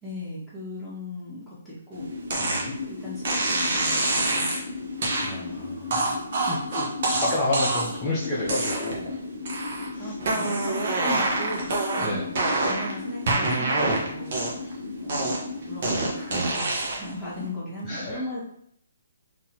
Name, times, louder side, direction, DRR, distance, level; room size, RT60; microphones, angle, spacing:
voice 1, 0.0-2.1 2.8-4.6 10.0-11.7 12.0-12.3 12.6-14.7 15.0-18.4, left 1 dB, ahead, -11 dB, 1.5 m, -37 dB
sound 1, 2.0-16.5, left 4 dB, 70° left, 0.7 m, -36 dB
sound 2, 2.3-2.7 3.2-4.6 5.0-5.3 5.9-8.0 8.4-9.1 9.5-9.9 10.2-12.9 13.3-14.7 15.1-17.1, right 2 dB, 55° right, 1.1 m, -26 dB
voice 2, 2.4-2.7 5.2-6.0 6.5-9.1 9.9-10.1 12.0-12.3 14.6-14.8 17.8-18.2, left 2 dB, 20° left, -8 dB, 0.8 m, -30 dB
3.9 x 2.9 x 2.9 m, 0.69 s
hypercardioid pair, 150°, 0 cm